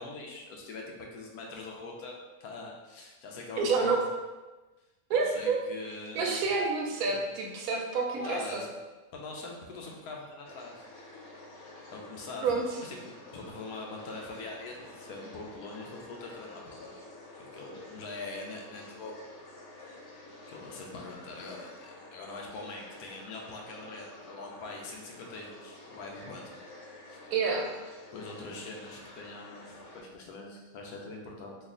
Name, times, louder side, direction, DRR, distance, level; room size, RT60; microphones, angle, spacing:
voice 1, 0.0-4.1 5.1-6.4 8.2-8.7 9.1-10.9 11.9-16.9 17.5-19.2 19.8-19.9 20.5-26.6 27.0-27.2 28.1-31.6, left 3 dB, 85° left, 0 dB, 1.1 m, -43 dB
voice 2, 3.6-4.0 5.1-5.6 6.1-8.6 12.4-12.6 27.3-27.7, right 4 dB, 75° right, 1 dB, 1.1 m, -28 dB
sound 1, 10.4-30.0, left 2 dB, 55° left, 0.9 m, -50 dB
3.2 x 2.4 x 3.6 m, 1.2 s
omnidirectional pair, 1.5 m